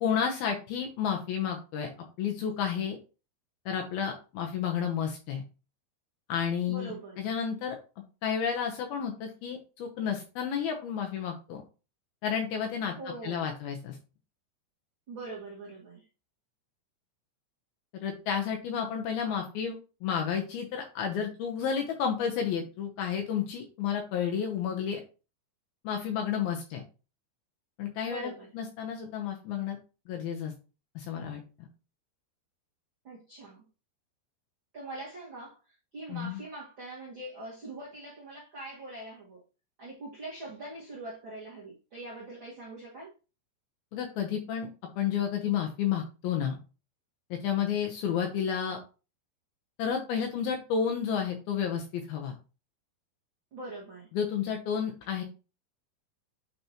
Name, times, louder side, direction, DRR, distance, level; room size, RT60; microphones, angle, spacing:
voice 1, 0.0-1.9 2.2-3.0 3.7-5.4 6.3-7.8 8.2-11.6 12.2-12.9 13.2-14.0 17.9-19.8 20.0-25.0 25.8-26.8 27.8-29.8 30.1-30.5 31.0-31.7 36.1-36.4 43.9-44.7 45.0-46.6 47.3-48.8 49.8-52.3 54.1-55.2, left 7 dB, 75° left, 2.3 m, -31 dB
voice 2, 6.6-7.2 13.0-13.5 15.1-16.1 28.0-28.5 33.0-33.6 34.7-35.6 35.9-39.4 39.8-43.1 53.5-54.1, right 2 dB, 70° right, 1.1 m, -43 dB
8.9 x 4.2 x 2.9 m
omnidirectional pair, 5.3 m